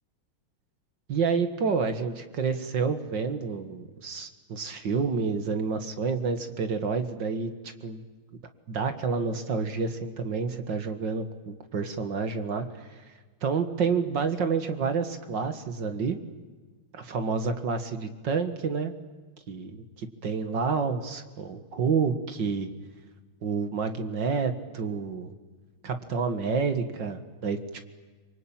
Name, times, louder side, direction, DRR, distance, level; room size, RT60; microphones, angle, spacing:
voice 1, 1.1-7.5 7.8-8.0 8.7-13.0 13.4-16.2 16.9-18.9 19.5-22.7 23.4-25.3 25.8-27.6, right 5 dB, 60° right, 8 dB, 2.3 m, -29 dB
26.0 x 24.5 x 9.0 m, 1.3 s
omnidirectional pair, 2.3 m